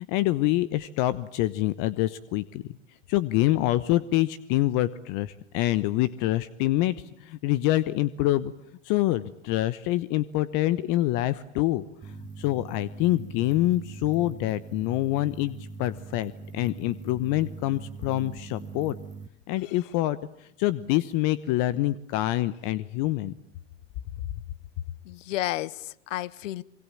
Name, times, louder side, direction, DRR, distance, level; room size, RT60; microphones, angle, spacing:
voice 1, 0.0-2.6 3.1-8.5 8.8-19.0 19.5-23.3, left 16 dB, 55° left, 1.1 m, -26 dB
sound 1, 12.0-19.3, right 4 dB, 20° right, 1.2 m, -42 dB
voice 2, 25.1-26.6, left 15 dB, 75° left, 1.1 m, -32 dB
25.0 x 23.5 x 8.6 m
hypercardioid pair, 100°, 38 cm